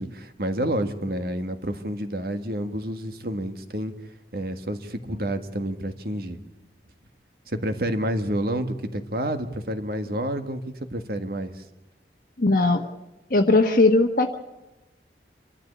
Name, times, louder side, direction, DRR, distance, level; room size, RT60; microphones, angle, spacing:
voice 1, 0.0-3.9 4.3-6.4 7.5-10.6 10.9-11.6, right 1 dB, 55° right, 8 dB, 1.7 m, -29 dB
voice 2, 12.4-12.9 13.3-14.4, left 2 dB, 50° left, 2 dB, 1.2 m, -19 dB
27.5 x 13.5 x 8.3 m, 1.0 s
head